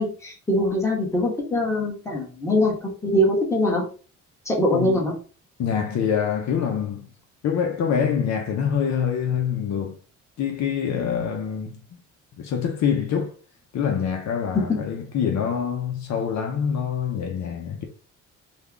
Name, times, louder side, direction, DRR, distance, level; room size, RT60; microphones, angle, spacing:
voice 1, 0.0-3.8 4.4-5.1 14.5-14.8, left 1 dB, 10° left, 1.5 m, -23 dB
voice 2, 4.7-5.1 5.6-7.1 7.4-10.0 10.4-11.8 12.4-13.3 13.7-17.9, left 7 dB, 65° left, 0.7 m, -25 dB
3.4 x 2.4 x 3.5 m
cardioid pair, 90°, 30 cm